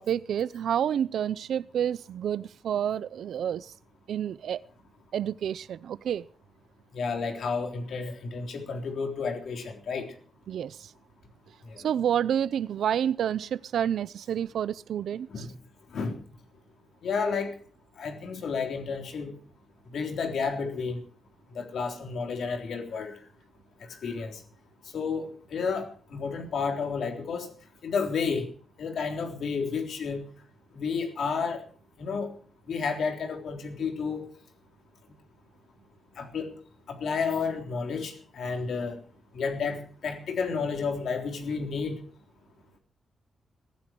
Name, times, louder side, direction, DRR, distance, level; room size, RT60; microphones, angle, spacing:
voice 1, 0.0-3.7 4.1-4.6 5.1-6.3 10.5-10.9 11.8-15.4, right 9 dB, 75° right, 0.6 m, -29 dB
voice 2, 6.9-10.1 11.7-11.8 15.3-15.5 15.9-16.2 17.0-17.5 18.0-19.4 19.9-21.0 21.5-23.2 24.0-24.4 24.9-27.5 27.8-28.5 28.8-30.2 30.7-31.6 32.0-32.3 32.7-34.3 36.2-36.6 36.9-39.0 39.3-42.0, left 5 dB, 65° left, 3.6 m, -31 dB
22.0 x 15.5 x 3.0 m
wide cardioid pair, 155°, 0 cm